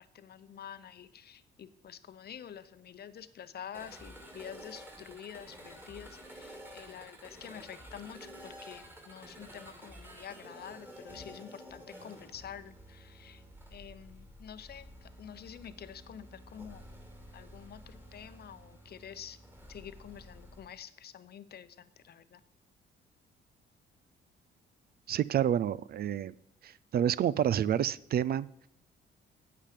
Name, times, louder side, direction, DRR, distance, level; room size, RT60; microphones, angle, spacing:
voice 1, 0.0-13.4 13.7-16.9 17.3-19.4 19.7-22.4, left 9 dB, 55° left, 0.7 m, -48 dB
sound 1, 3.7-20.7, equal, 10° right, 2.4 m, -51 dB
voice 2, 25.1-26.3 26.6-28.7, right 10 dB, 50° right, 0.4 m, -29 dB
8.7 x 8.4 x 5.1 m
cardioid pair, 90°, 20 cm